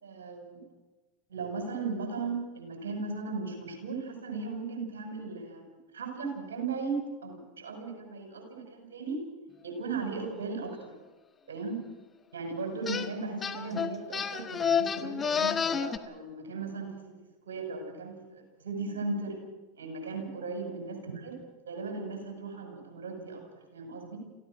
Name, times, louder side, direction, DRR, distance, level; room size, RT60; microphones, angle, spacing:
voice 1, 0.0-0.6 1.3-9.2 9.6-10.9 11.5-11.8 12.3-17.1 17.5-19.4 19.7-21.4 21.7-23.4 23.7-24.2, right 4 dB, 80° right, 4 dB, 6.1 m, -37 dB
sound 1, 12.9-13.1 13.4-16.0, left 7 dB, 25° left, 1.4 m, -29 dB
27.0 x 16.0 x 6.3 m, 1.2 s
hypercardioid pair, 90°, 0 cm